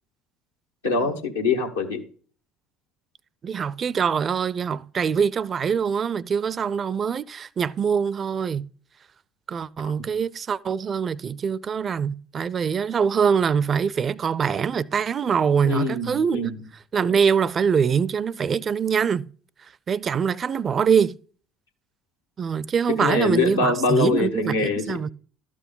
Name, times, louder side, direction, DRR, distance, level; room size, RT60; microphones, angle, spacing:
voice 1, 0.8-2.0 9.8-9.9 15.6-16.6 23.0-25.0, left 4 dB, 90° left, 1.2 m, -24 dB
voice 2, 3.4-8.7 9.5-16.5 16.9-19.3 19.9-21.1 22.4-25.1, right 6 dB, 40° right, 0.4 m, -23 dB
12.0 x 6.1 x 4.0 m
hypercardioid pair, 60°, 0 cm